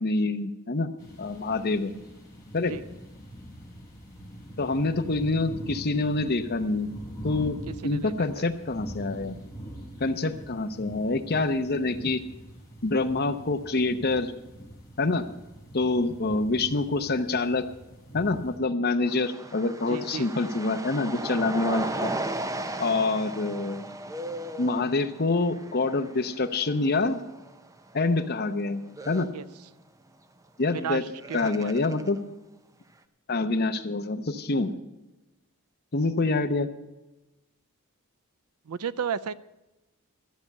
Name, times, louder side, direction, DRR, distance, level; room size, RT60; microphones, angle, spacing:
voice 1, 0.0-0.9 1.2-1.9 2.5-2.7 4.6-6.9 7.2-9.4 10.0-12.2 12.8-14.3 15.0-15.2 15.7-17.7 18.1-22.1 22.8-23.8 24.6-27.2 27.9-29.3 30.6-31.0 31.3-32.2 33.3-34.7 35.9-36.7, left 3 dB, 45° left, 8 dB, 0.8 m, -26 dB
sound 1, 1.0-18.6, equal, 10° left, 4.5 m, -43 dB
voice 2, 7.7-8.5 19.9-20.3 29.3-29.4 30.7-31.7 38.7-39.3, right 7 dB, 85° right, 16 dB, 0.5 m, -34 dB
sound 2, 19.1-27.7 28.0-28.2 28.9-29.3 30.8-30.9 31.2-32.2, right 1 dB, 15° right, 0.6 m, -36 dB
13.5 x 6.8 x 8.4 m, 1.0 s
head